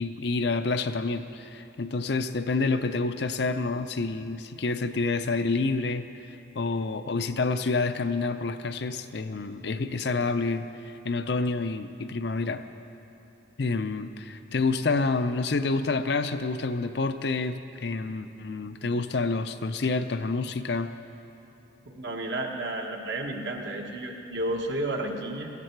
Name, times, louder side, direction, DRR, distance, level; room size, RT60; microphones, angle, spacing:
voice 1, 0.0-6.1 6.5-10.7 11.0-12.6 13.6-20.9, left 3 dB, 60° left, 9 dB, 0.5 m, -28 dB
voice 2, 21.8-25.5, right 1 dB, 65° right, 1 dB, 1.5 m, -32 dB
16.5 x 15.0 x 4.6 m, 3.0 s
head